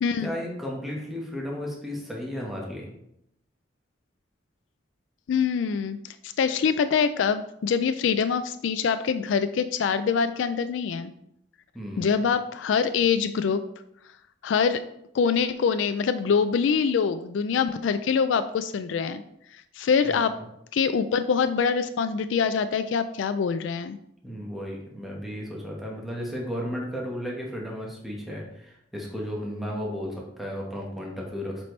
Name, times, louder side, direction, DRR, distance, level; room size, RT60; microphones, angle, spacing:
voice 1, 0.2-2.9 11.7-12.3 20.0-20.2 24.2-31.7, equal, ahead, -3 dB, 1.3 m, -34 dB
voice 2, 5.3-6.0 6.4-11.1 12.0-13.6 14.4-14.8 15.1-19.2 19.8-20.4 20.7-24.0, left 6 dB, 80° left, 11 dB, 0.3 m, -24 dB
7.4 x 4.2 x 3.2 m, 0.77 s
head